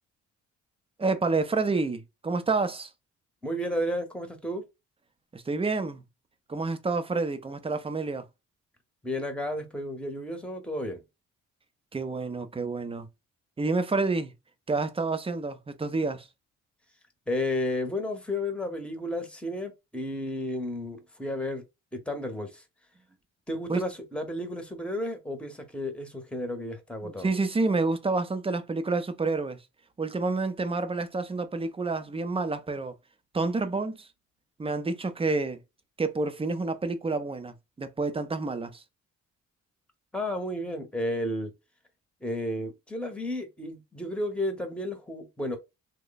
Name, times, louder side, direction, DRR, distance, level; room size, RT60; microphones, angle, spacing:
voice 1, 1.0-2.9 5.3-6.0 6.5-8.2 11.9-13.1 13.6-14.3 14.7-16.3 23.7-23.8 27.0-29.6 30.0-32.9 33.3-34.1 34.6-35.6 36.0-38.8, right 3 dB, 20° right, 0.6 m, -29 dB
voice 2, 3.4-4.6 9.0-11.0 17.3-21.6 21.9-22.6 23.5-27.3 40.1-41.5 42.2-45.6, left 1 dB, 5° left, 0.9 m, -32 dB
3.1 x 2.2 x 3.9 m
cardioid pair, 90°, 30 cm